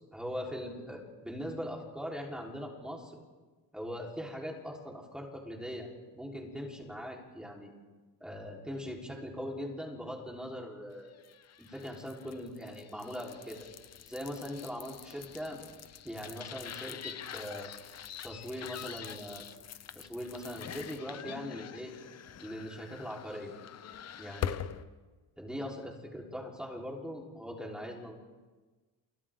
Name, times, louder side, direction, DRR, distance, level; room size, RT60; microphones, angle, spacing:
voice 1, 0.0-3.2 3.7-5.9 6.1-7.7 8.2-11.1 11.6-13.7 14.1-15.6 16.0-17.7 18.2-19.5 19.9-21.9 22.4-23.5 24.2-24.7 25.4-28.2, equal, ahead, -2 dB, 4.1 m, -41 dB
sound 1, 11.2-24.8, left 9 dB, 40° left, 0.8 m, -44 dB
29.0 x 29.0 x 3.8 m, 1.3 s
cardioid pair, 170°, 42 cm